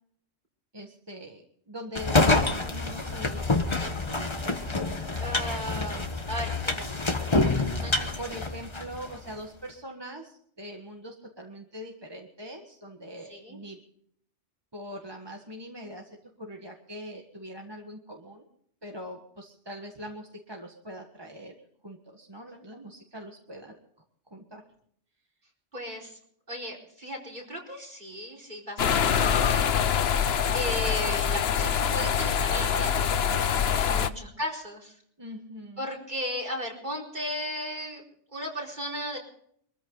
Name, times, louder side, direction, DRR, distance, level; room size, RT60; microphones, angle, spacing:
voice 1, 0.7-3.9 7.6-13.8 14.7-16.1 16.4-18.5 18.8-21.6 21.8-23.7 24.3-24.6 28.8-29.1 33.8-34.1 35.2-35.9, equal, 20° right, 1 dB, 1.6 m, -42 dB
sound 1, 2.0-9.2, left 2 dB, 25° left, 1.3 m, -27 dB
voice 2, 5.2-7.2 7.8-8.2 13.3-13.6 25.7-26.2 26.5-29.7 30.5-33.4 33.9-34.9 35.8-38.0 38.3-39.2, equal, 40° right, 0 dB, 4.7 m, -36 dB
sound 2, 28.8-34.1, left 7 dB, 60° left, 1.0 m, -25 dB
24.0 x 14.0 x 4.0 m, 0.65 s
omnidirectional pair, 1.3 m